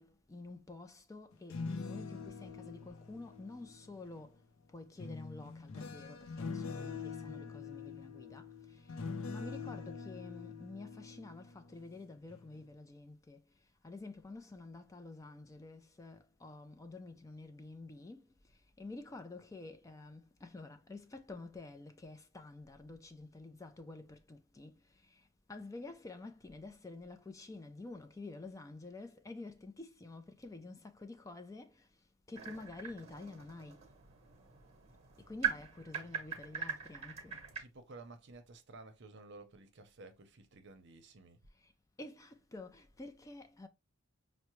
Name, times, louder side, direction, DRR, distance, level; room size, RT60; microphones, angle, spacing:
voice 1, 0.0-4.4 4.7-13.4 13.8-31.9 32.3-33.8 35.2-37.4 41.6-41.7 42.0-43.7, left 2 dB, 15° left, 0.3 m, -49 dB
sound 1, 1.3-4.2 5.0-11.9 12.3-12.6, left 4 dB, 80° left, 0.5 m, -44 dB
sound 2, 32.3-37.6, right 8 dB, 30° right, 0.9 m, -41 dB
voice 2, 37.6-41.4, right 3 dB, 60° right, 0.7 m, -54 dB
5.6 x 2.0 x 3.0 m
head